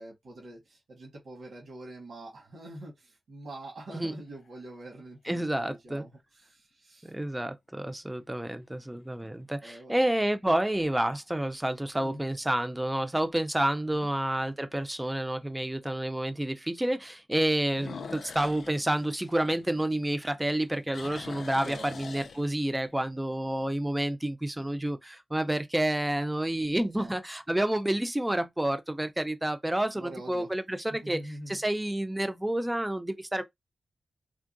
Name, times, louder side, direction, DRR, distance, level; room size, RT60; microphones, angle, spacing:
voice 1, 0.0-6.1 6.4-7.1 9.6-10.0 11.9-12.2 13.9-14.1 17.9-18.1 21.5-21.9 26.9-27.1 30.0-30.5 31.0-31.6, right 1 dB, 90° right, 1.4 m, -44 dB
sound 1, 4.0-4.7 5.4-5.5 10.7-11.1 11.6-11.7 12.3-12.4 12.6-12.7 14.2-14.3 17.7-20.2 20.5-22.9, left 5 dB, 80° left, 0.4 m, -45 dB
voice 2, 5.3-6.0 7.0-33.4, right 1 dB, 10° right, 0.4 m, -29 dB
3.4 x 2.2 x 2.5 m
wide cardioid pair, 110°, 0 cm